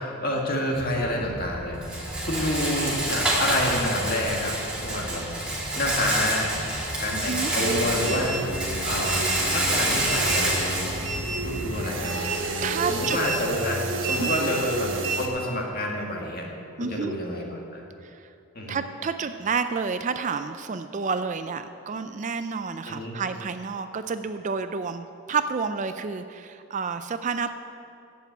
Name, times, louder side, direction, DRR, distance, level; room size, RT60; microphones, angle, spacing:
voice 1, 0.0-8.4 8.8-9.3 9.5-10.8 11.4-12.2 12.9-16.5 16.8-17.8 18.5-18.8 22.9-23.2, left 1 dB, 40° left, -1 dB, 2.0 m, -29 dB
Rattle, 0.7-11.8, right 1 dB, 5° right, 2.4 m, -28 dB
voice 2, 7.1-7.5 11.3-11.4 12.6-13.2 14.2-14.5 16.8-17.2 18.0-18.2 18.7-27.5, right 5 dB, 35° right, 10 dB, 0.3 m, -30 dB
sound 1, 7.6-15.3, right 2 dB, 60° right, 1.3 m, -30 dB
11.5 x 8.2 x 8.1 m, 2.6 s
head